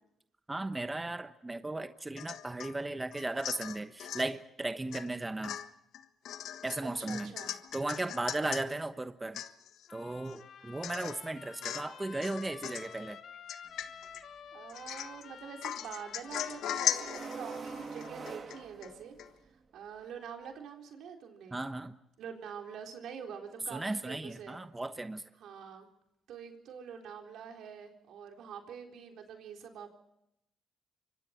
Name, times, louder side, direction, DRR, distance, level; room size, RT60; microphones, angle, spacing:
voice 1, 0.5-5.6 6.6-7.3 7.7-9.4 9.9-13.2 21.5-22.0 23.7-25.2, right 2 dB, 15° right, 9 dB, 1.1 m, -36 dB
Domestic sounds home sounds / Chink clink / Drip, 2.2-2.7 3.1-4.3 4.9-5.1 5.4-8.6 9.0-9.1 9.3-9.9 10.3-10.4 10.8-11.2 11.6-12.0 12.2-12.9 13.5-14.2 14.7-15.2 15.6-18.9 19.2-19.3, left 10 dB, 80° left, 1.4 m, -38 dB
voice 2, 6.8-7.6 10.6-10.7 14.5-19.2 19.7-21.6 22.2-24.6 25.4-25.9 26.3-29.9, right 7 dB, 75° right, 3 dB, 4.0 m, -46 dB
Trumpet, 9.9-17.5, left 8 dB, 65° left, 2.0 m, -51 dB
sound 1, 13.7-13.8 16.8-19.5, right 4 dB, 45° right, 3.0 m, -43 dB
28.5 x 25.0 x 4.5 m, 0.82 s
cardioid pair, 90°, 0 cm